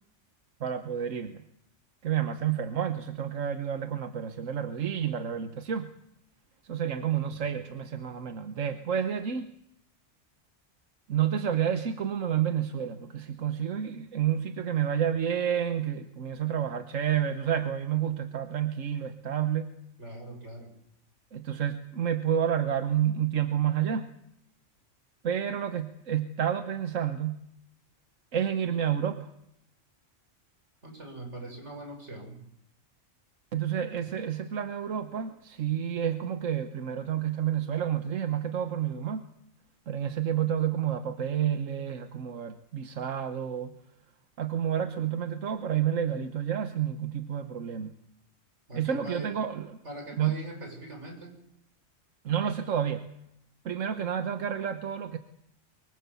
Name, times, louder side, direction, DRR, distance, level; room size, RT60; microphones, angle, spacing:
voice 1, 0.6-1.4 2.0-5.9 6.7-9.5 11.1-19.7 21.3-24.1 25.2-27.4 28.3-29.3 33.5-39.2 39.9-43.7 44.4-47.9 48.7-49.7 50.2-50.4 52.2-53.0 53.6-55.2, right 9 dB, 90° right, 9 dB, 1.5 m, -29 dB
voice 2, 20.0-20.7 30.8-32.4 48.7-49.3 49.8-51.3, right 1 dB, 65° right, 3 dB, 6.3 m, -42 dB
23.5 x 23.0 x 7.0 m, 0.77 s
omnidirectional pair, 1.3 m